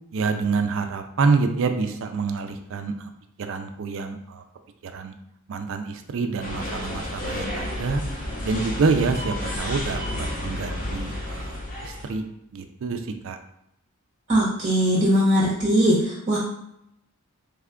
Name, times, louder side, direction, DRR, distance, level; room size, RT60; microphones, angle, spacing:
voice 1, 0.1-3.1 3.4-4.4 4.8-5.1 5.5-8.0 8.4-12.2 12.5-13.4, right 4 dB, 60° right, 7 dB, 0.4 m, -27 dB
sound 1, 6.4-12.2, left 1 dB, 35° left, 0.8 m, -31 dB
voice 2, 14.3-16.4, equal, 30° right, -6 dB, 0.7 m, -20 dB
3.3 x 2.3 x 3.6 m, 0.80 s
head